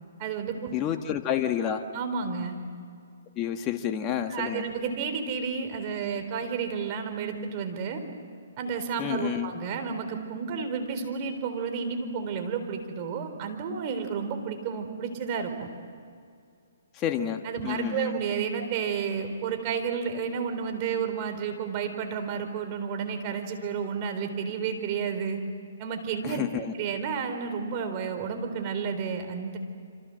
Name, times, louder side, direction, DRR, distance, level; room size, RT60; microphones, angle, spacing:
voice 1, 0.2-0.7 1.9-2.5 4.3-8.0 8.6-15.7 17.4-25.4 25.8-26.4 26.8-29.6, right 6 dB, 35° right, 6 dB, 4.0 m, -31 dB
voice 2, 0.7-1.8 3.4-4.6 9.0-9.5 17.0-18.2 26.2-26.7, left 10 dB, 25° left, 6 dB, 1.4 m, -29 dB
27.5 x 26.5 x 7.8 m, 2.3 s
hypercardioid pair, 140°, 0 cm